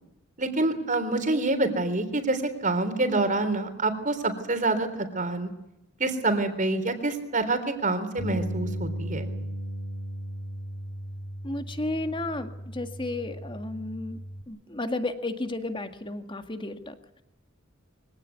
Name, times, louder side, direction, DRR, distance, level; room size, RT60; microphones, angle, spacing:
voice 1, 0.4-5.5 6.0-9.3, right 2 dB, 40° right, 8 dB, 3.6 m, -27 dB
Bass guitar, 8.2-14.4, equal, 80° left, 2.8 m, -36 dB
voice 2, 11.4-14.2 14.5-16.9, left 2 dB, 25° left, 8 dB, 1.9 m, -33 dB
24.0 x 17.0 x 9.5 m, 0.91 s
head